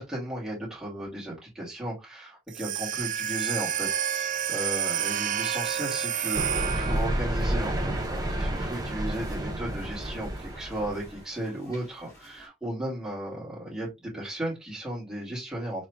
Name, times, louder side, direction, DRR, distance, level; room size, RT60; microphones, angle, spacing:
voice 1, 0.0-15.9, right 1 dB, 5° right, 2.2 m, -35 dB
sound 1, 2.5-7.3, right 9 dB, 45° right, 0.4 m, -29 dB
sound 2, 5.6-12.5, equal, 20° left, 2.5 m, -52 dB
sound 3, 6.3-11.2, right 1 dB, 20° right, 0.8 m, -30 dB
4.4 x 3.8 x 2.3 m
head